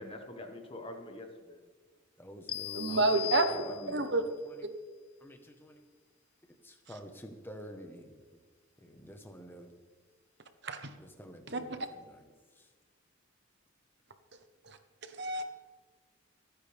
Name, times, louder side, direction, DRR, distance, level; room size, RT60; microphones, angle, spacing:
voice 1, 0.0-1.6 2.9-4.1, left 1 dB, 25° left, 4 dB, 1.6 m, -45 dB
voice 2, 2.2-3.0 3.5-4.1 4.4-4.5 5.2-5.8 6.6-8.1 8.8-9.7 11.0-11.8, equal, 10° left, 5 dB, 1.3 m, -48 dB
sound 1, 2.5-4.2, left 14 dB, 45° left, 0.7 m, -39 dB
voice 3, 2.7-3.6 3.9-4.2 10.6-10.8 11.5-11.6 15.2-15.4, right 2 dB, 55° right, 8 dB, 1.2 m, -28 dB
28.0 x 9.7 x 3.6 m, 1.5 s
head